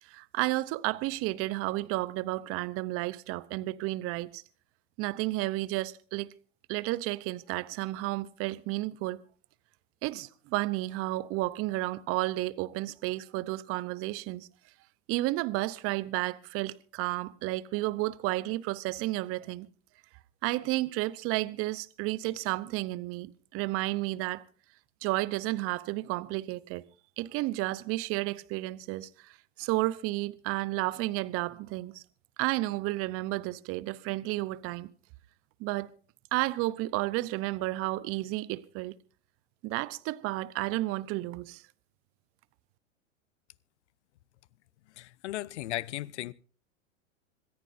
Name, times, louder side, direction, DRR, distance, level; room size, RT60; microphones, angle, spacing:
voice 1, 0.0-4.4 5.0-6.3 6.7-9.2 10.0-14.5 15.1-19.7 20.4-24.4 25.0-26.8 27.2-32.0 32.4-34.9 35.6-35.9 36.3-38.9 39.6-41.6, right 19 dB, 35° right, 0.8 m, -32 dB
voice 2, 45.0-46.3, left 16 dB, 65° left, 0.8 m, -36 dB
26.5 x 14.0 x 2.7 m
hypercardioid pair, 105°, 38 cm